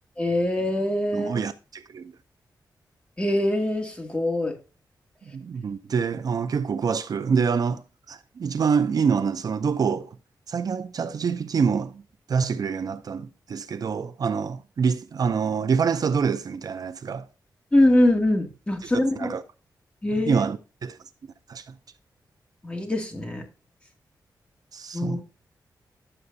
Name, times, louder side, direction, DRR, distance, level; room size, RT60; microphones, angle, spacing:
voice 1, 0.2-1.4 3.2-4.6 17.7-19.3 20.0-20.5 22.6-23.4 24.9-25.2, left 1 dB, 15° left, 2.2 m, -23 dB
voice 2, 1.1-2.1 5.3-10.1 10.5-12.0 12.3-17.3 18.9-19.4 20.3-21.0 21.5-21.6 24.7-25.2, right 6 dB, 60° right, 0.6 m, -26 dB
11.0 x 7.7 x 2.7 m
wide cardioid pair, 115°, 7 cm